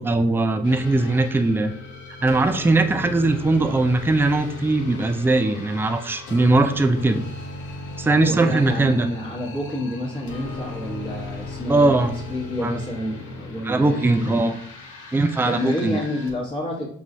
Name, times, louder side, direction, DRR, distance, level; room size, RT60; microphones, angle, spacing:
voice 1, 0.0-1.7 2.2-7.2 8.0-9.1 11.7-12.1 12.6-12.8 13.6-14.5 15.1-16.0, right 2 dB, 10° right, 8 dB, 0.3 m, -20 dB
sound 1, 0.6-16.3, left 3 dB, 90° left, 1.0 m, -36 dB
voice 2, 8.2-14.5 15.4-16.9, equal, 15° left, -6 dB, 1.0 m, -29 dB
5.3 x 3.1 x 2.6 m, 0.63 s
cardioid pair, 90°, 30 cm